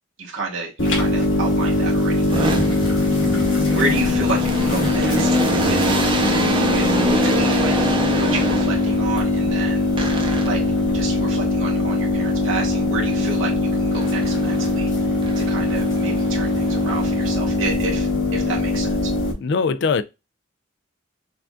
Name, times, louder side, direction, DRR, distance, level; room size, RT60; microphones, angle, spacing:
voice 1, 0.2-2.7 3.7-5.9 6.6-7.0 7.2-7.7 8.2-9.9 10.4-10.6 10.9-19.1, right 3 dB, 80° right, 1.2 m, -30 dB
sound 1, 0.8-19.3, left 3 dB, 75° left, 1.8 m, -21 dB
sound 2, 1.4-9.1 10.0-10.8 13.9-14.8 15.2-17.6, right 2 dB, 25° right, 0.6 m, -26 dB
voice 2, 19.4-20.0, left 5 dB, 60° left, 0.4 m, -21 dB
5.8 x 2.5 x 2.3 m
head